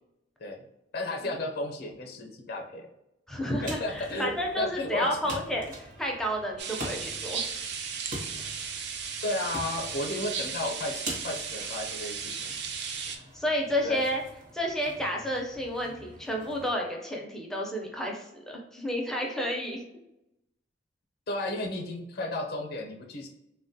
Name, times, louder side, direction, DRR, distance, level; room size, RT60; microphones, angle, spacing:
voice 1, 0.9-2.9 3.6-5.4 9.2-12.5 13.8-14.0 21.3-23.3, left 2 dB, 55° left, 2 dB, 0.5 m, -33 dB
voice 2, 3.3-7.4 13.3-14.2 14.5-19.8, equal, 5° left, -1 dB, 0.4 m, -31 dB
sound 1, 3.5-16.7, right 1 dB, 45° right, 0.8 m, -44 dB
sound 2, 6.6-13.2, right 6 dB, 65° right, 0.4 m, -35 dB
3.5 x 2.2 x 2.6 m, 0.87 s
head